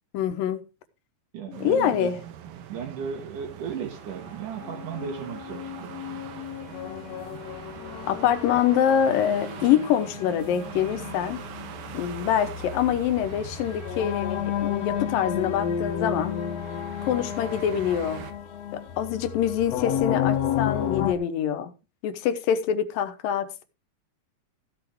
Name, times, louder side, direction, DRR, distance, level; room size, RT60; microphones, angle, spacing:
voice 1, 0.1-0.6 1.5-2.2 8.1-11.4 11.9-16.4 17.0-18.2 18.7-21.7 22.0-23.6, left 9 dB, 80° left, 2.7 m, -25 dB
voice 2, 1.3-2.1 2.7-6.1, right 7 dB, 70° right, 2.9 m, -35 dB
sound 1, 1.5-18.3, right 9 dB, 90° right, 3.0 m, -43 dB
sound 2, 4.6-21.1, left 9 dB, 60° left, 2.0 m, -32 dB
14.5 x 7.2 x 4.6 m
omnidirectional pair, 4.0 m